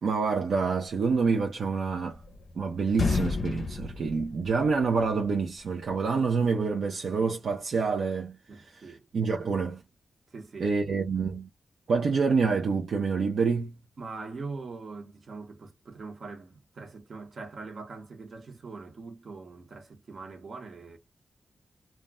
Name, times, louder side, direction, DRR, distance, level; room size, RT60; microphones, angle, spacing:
voice 1, 0.0-2.2 2.6-8.4 9.1-9.8 10.6-11.5 11.9-13.7, right 4 dB, 85° right, 0.4 m, -27 dB
sound 1, 2.1-2.6 2.9-5.0, left 4 dB, 65° left, 0.4 m, -31 dB
voice 2, 8.5-9.0 10.3-10.7 14.0-21.0, right 4 dB, 65° right, 0.8 m, -42 dB
2.2 x 2.1 x 3.4 m
wide cardioid pair, 105°, 0 cm